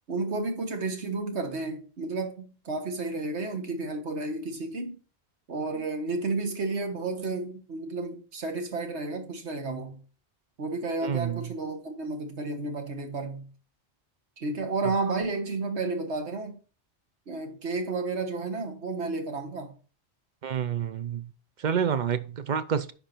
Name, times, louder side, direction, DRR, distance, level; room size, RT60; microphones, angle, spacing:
voice 1, 0.1-5.0 5.5-10.0 10.6-13.5 14.4-16.6 17.3-19.8, right 3 dB, 75° right, 1.7 m, -32 dB
voice 2, 11.0-11.4 20.4-21.2 21.6-22.9, right 7 dB, 50° right, 0.7 m, -28 dB
10.5 x 4.4 x 4.5 m
omnidirectional pair, 1.2 m